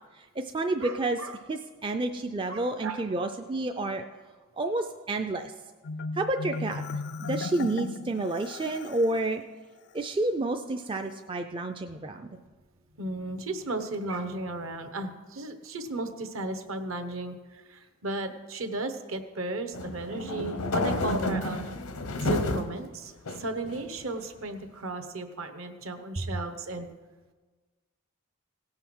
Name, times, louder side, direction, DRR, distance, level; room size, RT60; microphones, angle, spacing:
voice 1, 0.2-1.2 1.5-4.0 4.6-5.5 6.1-7.0 7.3-9.4 9.9-12.4, right 2 dB, 20° right, 5 dB, 0.4 m, -30 dB
voice 2, 0.8-1.4 2.5-3.0 13.0-21.6 22.2-26.9, right 2 dB, 65° right, 8 dB, 1.0 m, -35 dB
Marimba xylophone, 5.8-9.2, left 3 dB, 50° left, 0.4 m, -36 dB
sound 1, 19.7-22.7 23.3-24.1, left 2 dB, 90° left, 0.9 m, -30 dB
17.0 x 5.7 x 6.1 m, 1.4 s
head